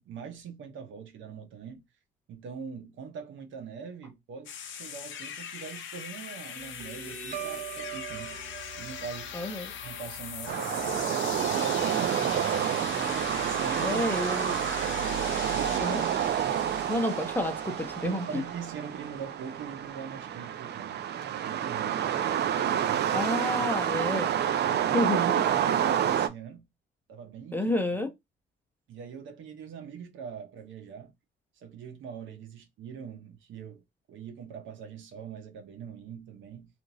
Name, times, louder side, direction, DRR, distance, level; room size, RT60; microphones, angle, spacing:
voice 1, 0.0-1.8 2.3-9.3 9.8-12.6 13.3-14.0 14.4-14.7 15.5-15.8 18.0-21.1 21.4-22.0 22.6-23.7 24.6-25.1 25.4-26.7 27.1-27.7 28.9-31.1 31.6-33.8 34.1-36.7, right 6 dB, 80° right, 0.9 m, -42 dB
sound 1, 4.5-20.3, left 7 dB, 75° left, 0.7 m, -40 dB
Guitar, 6.6-13.6, right 8 dB, 40° right, 1.7 m, -44 dB
voice 2, 9.3-9.7 13.8-14.6 15.8-16.0 16.9-18.4 23.1-24.3 24.9-25.4 27.5-28.1, left 1 dB, 10° left, 0.7 m, -29 dB
sound 2, 10.5-26.3, right 10 dB, 60° right, 0.5 m, -29 dB
2.9 x 2.5 x 2.6 m
cardioid pair, 90°, 20 cm